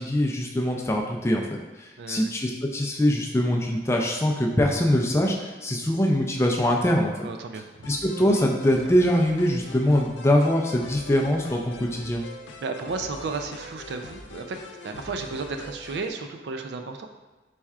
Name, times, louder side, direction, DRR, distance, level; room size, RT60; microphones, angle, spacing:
voice 1, 0.0-7.3 7.9-12.2, left 1 dB, 15° left, 0 dB, 0.4 m, -23 dB
voice 2, 2.0-2.3 7.2-7.7 12.6-14.6 14.8-17.1, right 4 dB, 70° right, 6 dB, 0.4 m, -33 dB
sound 1, 7.8-16.1, left 1 dB, 80° left, 0.4 m, -43 dB
4.5 x 4.2 x 2.4 m, 1.2 s
head